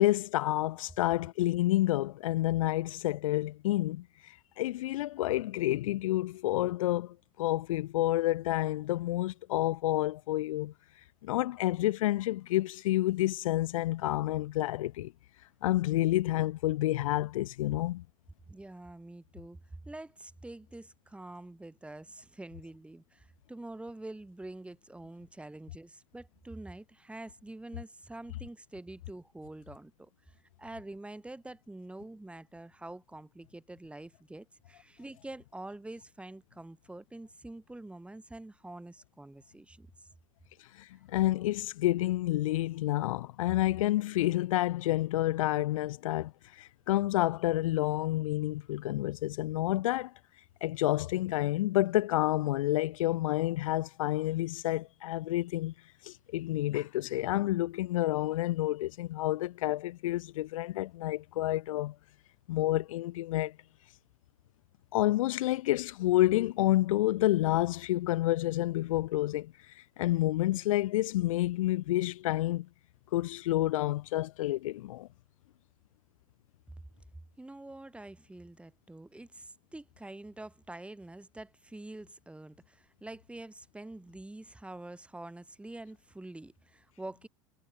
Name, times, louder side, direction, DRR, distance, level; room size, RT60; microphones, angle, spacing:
voice 1, 0.0-10.7 11.2-15.1 15.6-18.0 40.8-50.1 50.6-55.7 56.0-61.9 62.5-63.6 64.9-72.7 73.1-75.1, left 16 dB, 80° left, 0.6 m, -29 dB
voice 2, 18.5-39.9 77.4-87.3, right 2 dB, 5° right, 4.5 m, -46 dB
hypercardioid pair, 105°, 17 cm